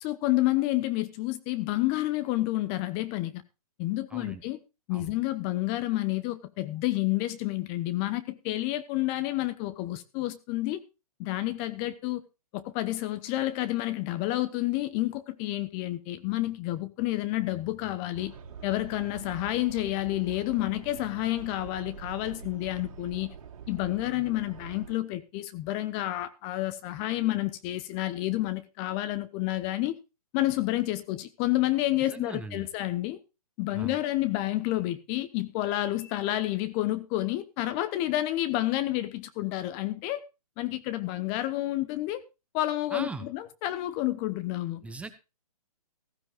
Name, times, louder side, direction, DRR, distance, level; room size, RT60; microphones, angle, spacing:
voice 1, 0.0-3.4 3.8-4.6 4.9-10.8 11.2-12.2 12.5-18.3 18.6-23.3 23.7-30.0 30.3-33.2 33.6-40.2 40.6-42.2 42.5-44.8, left 16 dB, 25° left, 0.9 m, -29 dB
voice 2, 4.1-4.4 4.9-5.1 32.1-32.7 33.7-33.9 42.9-43.2 44.8-45.1, right 3 dB, 5° right, 0.8 m, -39 dB
sound 1, 18.1-24.9, right 6 dB, 55° right, 2.9 m, -45 dB
15.5 x 15.0 x 2.4 m
hypercardioid pair, 135°, 20 cm